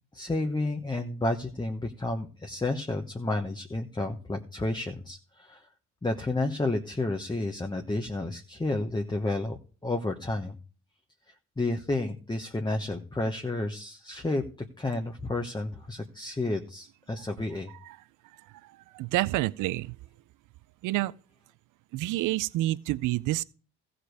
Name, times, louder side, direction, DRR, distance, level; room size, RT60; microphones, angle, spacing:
voice 1, 0.1-5.6 6.0-9.6 9.8-10.5 11.6-14.4 14.8-17.7, left 2 dB, 15° left, 1.1 m, -31 dB
voice 2, 18.9-19.9 20.8-21.1 21.9-23.4, right 17 dB, 85° right, 0.5 m, -28 dB
14.5 x 5.1 x 6.4 m
cardioid pair, 90°, 30 cm